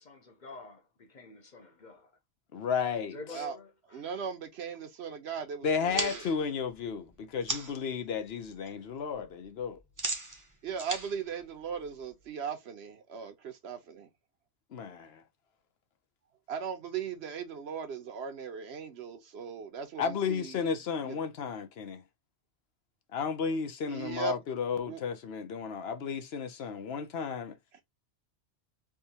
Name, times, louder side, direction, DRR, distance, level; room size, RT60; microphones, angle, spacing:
voice 1, 0.0-2.1 3.1-4.1, left 3 dB, 45° left, 1.0 m, -48 dB
voice 2, 2.5-3.2 5.6-9.8 14.7-15.2 20.0-22.0 23.1-27.6, left 6 dB, 65° left, 0.9 m, -33 dB
voice 3, 3.9-6.2 10.6-14.1 16.5-20.6 21.0-21.2 23.9-24.4 24.8-25.0, right 6 dB, 70° right, 1.1 m, -38 dB
sound 1, 5.9-7.9 8.3-8.7 9.0-12.2, right 2 dB, 20° right, 0.7 m, -38 dB
3.6 x 2.8 x 2.8 m
omnidirectional pair, 1.2 m